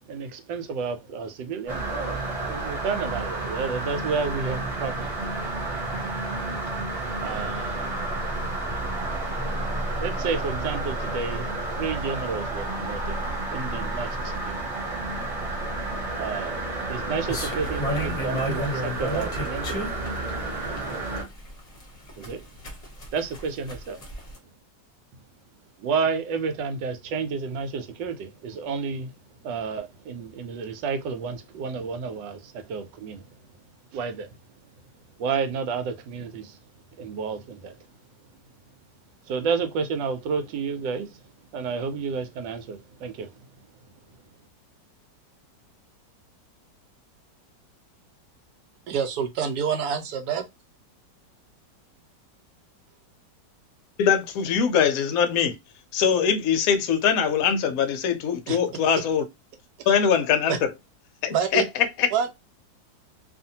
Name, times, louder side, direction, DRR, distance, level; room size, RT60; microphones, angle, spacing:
voice 1, 0.0-5.4 6.7-6.8 7.2-7.9 9.1-9.3 9.7-14.7 16.1-16.6 16.9-19.8 22.2-22.5 23.1-24.0 25.8-29.1 29.4-33.2 33.9-34.3 35.2-36.6 37.0-37.9 39.3-41.2 41.5-43.5, right 5 dB, 85° right, 1.3 m, -31 dB
sound 1, 1.7-21.2, right 2 dB, 25° right, 1.0 m, -31 dB
sound 2, 17.3-24.4, equal, 30° left, 0.8 m, -33 dB
voice 2, 48.9-50.4 58.5-58.6 59.8-60.0 60.5-60.6 61.3-61.6 62.1-62.3, right 7 dB, 70° right, 1.1 m, -26 dB
voice 3, 54.0-55.5 55.9-59.2 59.9-60.5 61.2-61.6 62.0-62.1, left 7 dB, 70° left, 0.9 m, -22 dB
2.7 x 2.5 x 2.7 m
omnidirectional pair, 1.9 m